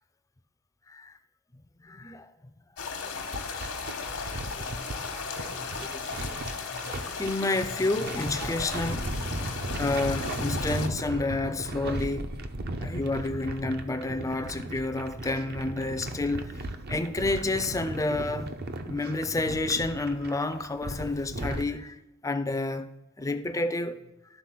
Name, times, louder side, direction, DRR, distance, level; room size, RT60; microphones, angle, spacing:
voice 1, 1.8-2.3 3.0-3.7 4.4-6.0 7.1-9.1 9.8-12.3 12.8-16.5 16.9-18.5 18.9-22.0 22.2-22.9 23.2-24.0, left 2 dB, 15° left, 0.4 m, -30 dB
sound 1, 2.8-10.9, left 5 dB, 80° left, 1.1 m, -36 dB
sound 2, 3.2-21.7, right 1 dB, 45° right, 0.6 m, -36 dB
11.5 x 4.0 x 5.8 m
head